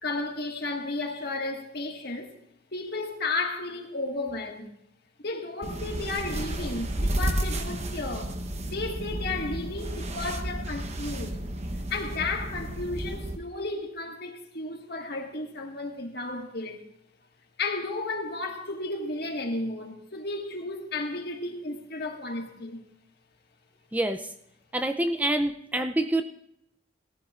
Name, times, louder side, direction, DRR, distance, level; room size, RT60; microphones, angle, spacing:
voice 1, 0.0-2.3 2.7-4.7 5.2-8.4 8.7-11.4 11.9-16.8 17.6-22.8, left 2 dB, 55° left, 1.7 m, -33 dB
sound 1, 5.6-13.4, right 1 dB, 35° right, 0.9 m, -32 dB
voice 2, 23.9-24.3 24.7-26.2, right 1 dB, 10° right, 0.4 m, -26 dB
18.5 x 14.0 x 2.4 m
head